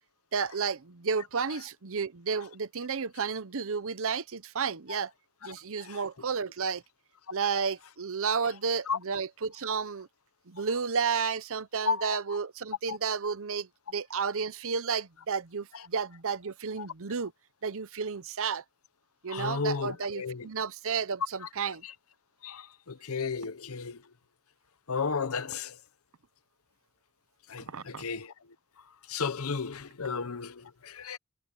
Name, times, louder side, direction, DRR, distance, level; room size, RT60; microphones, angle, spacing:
voice 1, 0.3-5.1 5.4-6.8 7.3-10.1 10.5-17.3 17.6-18.6 19.2-21.8 27.7-28.0, right 5 dB, 65° right, 0.8 m, -32 dB
voice 2, 5.4-6.0 7.5-7.6 8.9-9.0 11.8-12.4 12.9-13.0 15.7-15.8 16.8-16.9 19.3-20.5 21.8-21.9 22.4-24.0 24.9-25.8 27.5-28.3 29.1-31.2, left 5 dB, 70° left, 0.9 m, -34 dB
head